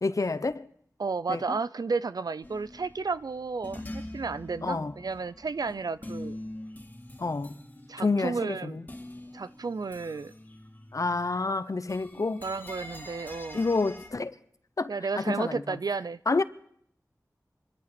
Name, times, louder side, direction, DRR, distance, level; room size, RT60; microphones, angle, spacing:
voice 1, 0.0-0.7 1.3-1.4 4.6-4.9 7.2-7.5 8.0-8.9 10.9-12.4 13.5-14.3 14.8-15.8 16.3-16.4, left 3 dB, 60° left, 0.7 m, -28 dB
voice 2, 1.0-6.4 7.9-8.8 9.3-10.3 12.2-13.6 14.9-16.2, right 4 dB, 80° right, 0.5 m, -32 dB
sound 1, 2.4-11.5 11.7-14.1, left 1 dB, 25° left, 2.1 m, -44 dB
26.0 x 11.5 x 4.3 m
wide cardioid pair, 65°, 6 cm